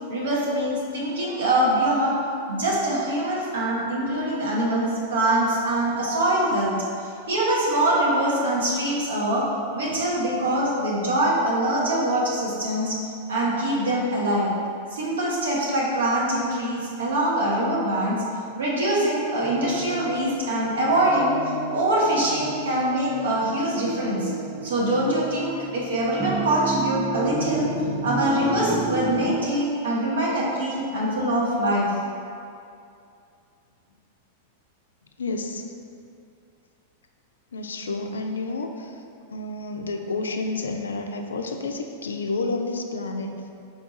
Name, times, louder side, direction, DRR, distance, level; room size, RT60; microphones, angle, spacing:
voice 1, 0.1-2.2 2.5-6.7 7.3-9.4 9.7-13.0 13.3-14.5 14.9-18.2 18.6-21.4 21.7-24.3 24.6-27.7 28.0-31.9, right 1 dB, 70° right, -5 dB, 0.9 m, -23 dB
sound 1, 19.4-29.4, right 3 dB, 10° right, 0.4 m, -32 dB
voice 2, 35.2-35.6 37.5-38.9 39.3-43.5, left 3 dB, 75° left, 5 dB, 0.3 m, -30 dB
4.2 x 2.3 x 3.9 m, 2.5 s
figure-of-eight pair, 95°, 0 cm